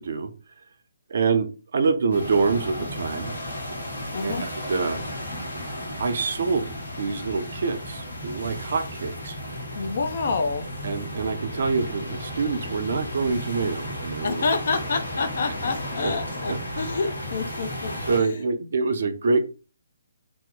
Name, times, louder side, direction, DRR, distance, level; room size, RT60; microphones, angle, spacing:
voice 1, 1.1-1.5 1.7-3.4 4.2-4.4 4.7-5.1 6.0-9.4 10.8-14.4 16.0-16.1 16.5-16.9 18.1-19.4, right 4 dB, 60° right, 7 dB, 0.5 m, -26 dB
sound 1, 2.1-18.2, left 1 dB, 85° left, 1.2 m, -34 dB
voice 2, 4.1-4.5 9.7-10.7 14.2-18.7, left 4 dB, 60° left, 8 dB, 0.6 m, -28 dB
2.9 x 2.0 x 3.8 m, 0.33 s
figure-of-eight pair, 140°, 0 cm